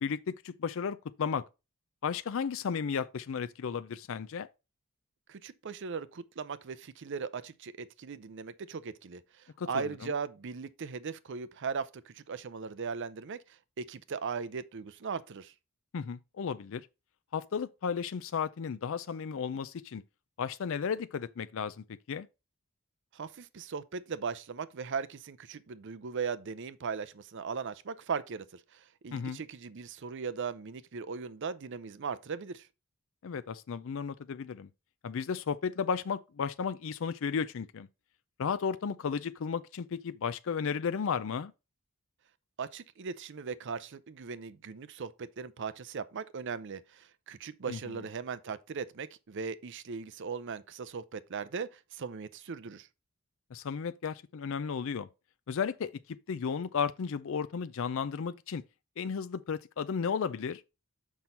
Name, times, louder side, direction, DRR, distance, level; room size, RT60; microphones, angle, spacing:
voice 1, 0.0-1.5 2.0-4.5 9.6-9.7 10.0-10.1 15.9-16.9 17.3-20.0 20.4-22.3 29.1-29.4 33.2-34.7 35.0-37.9 38.4-41.5 47.7-48.0 53.5-55.1 55.5-55.9 56.3-58.6 59.0-60.6, left 6 dB, 65° left, 0.4 m, -34 dB
voice 2, 5.3-15.5 23.1-32.7 42.6-52.9, right 5 dB, 55° right, 0.5 m, -38 dB
6.1 x 5.4 x 4.3 m
head